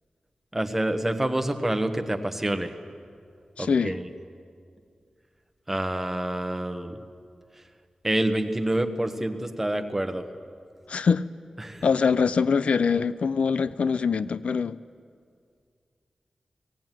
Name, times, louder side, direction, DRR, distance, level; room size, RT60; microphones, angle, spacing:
voice 1, 0.5-2.7 3.6-4.0 5.7-7.0 8.0-10.2 11.6-11.8, right 1 dB, 10° right, 6 dB, 1.2 m, -27 dB
voice 2, 3.6-4.0 10.9-11.2 11.8-14.8, left 5 dB, 70° left, 15 dB, 0.4 m, -23 dB
18.0 x 17.0 x 9.2 m, 2.2 s
wide cardioid pair, 125°, 2 cm